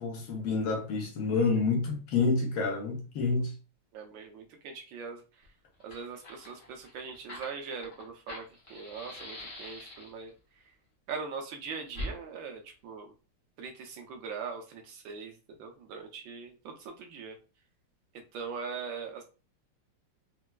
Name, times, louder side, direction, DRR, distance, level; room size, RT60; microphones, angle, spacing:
voice 1, 0.0-3.5, left 4 dB, 75° left, 1.6 m, -28 dB
voice 2, 3.9-5.2 5.8-8.4 8.7-10.3 11.1-13.0 13.6-15.3 15.6-17.4 18.3-19.2, right 5 dB, 75° right, 1.2 m, -41 dB
Fire, 5.4-5.5 5.7-10.3 11.9-12.1, left 1 dB, 45° left, 0.9 m, -43 dB
4.3 x 2.2 x 2.2 m
omnidirectional pair, 2.3 m